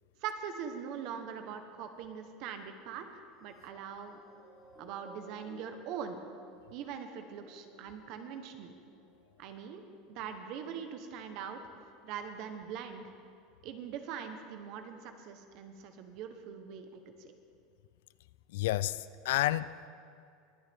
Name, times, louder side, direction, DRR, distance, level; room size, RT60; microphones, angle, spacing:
voice 1, 0.2-3.1 3.4-4.2 4.8-6.2 6.7-8.8 9.4-9.8 10.1-11.6 12.0-13.1 13.6-17.3, right 7 dB, 45° right, 1.1 m, -42 dB
sound 1, 3.4-10.1 10.7-10.9, left 1 dB, 15° left, 2.6 m, -58 dB
voice 2, 18.5-19.9, left 15 dB, 80° left, 0.3 m, -31 dB
21.0 x 9.7 x 3.6 m
supercardioid pair, 170°, 0 cm